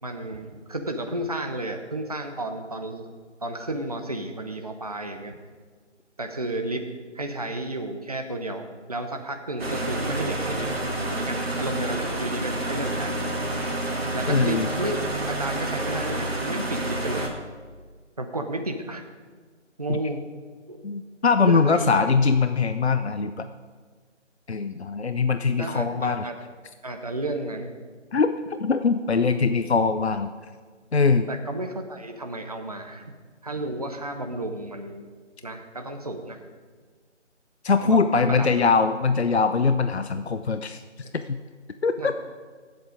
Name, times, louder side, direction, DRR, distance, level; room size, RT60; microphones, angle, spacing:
voice 1, 0.0-3.1 3.4-5.4 6.2-6.8 7.1-10.7 11.1-13.1 14.1-15.0 15.3-17.3 18.2-19.0 19.8-20.2 20.7-20.8 21.5-21.9 25.6-26.3 26.8-27.7 31.3-33.1 33.4-35.1 35.4-36.4 37.8-38.7 42.0-42.1, right 1 dB, 30° right, 5 dB, 0.9 m, -32 dB
sound 1, 9.6-17.3, right 1 dB, 55° right, 2.0 m, -29 dB
voice 2, 14.3-14.7 19.9-20.0 20.8-23.4 24.5-26.3 28.1-30.3 30.9-31.3 37.6-40.8 41.1-41.4 41.8-42.1, left 4 dB, 60° left, 10 dB, 0.7 m, -22 dB
15.0 x 8.0 x 5.1 m, 1.5 s
figure-of-eight pair, 160°, 36 cm